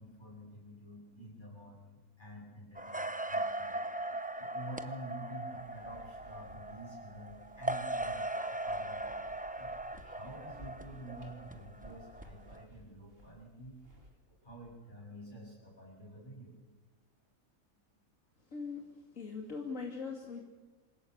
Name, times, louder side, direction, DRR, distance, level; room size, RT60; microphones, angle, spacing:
voice 1, 0.0-3.8 4.4-9.1 9.6-13.8 14.4-16.6, right 1 dB, 35° left, -3 dB, 8.2 m, -49 dB
sound 1, 2.7-12.6, right 1 dB, 10° right, 0.6 m, -39 dB
sound 2, 5.6-14.1, equal, 45° right, 3.6 m, -57 dB
voice 2, 18.4-20.4, left 4 dB, 75° left, 0 dB, 2.9 m, -41 dB
27.5 x 16.5 x 8.2 m, 1.2 s
omnidirectional pair, 1.4 m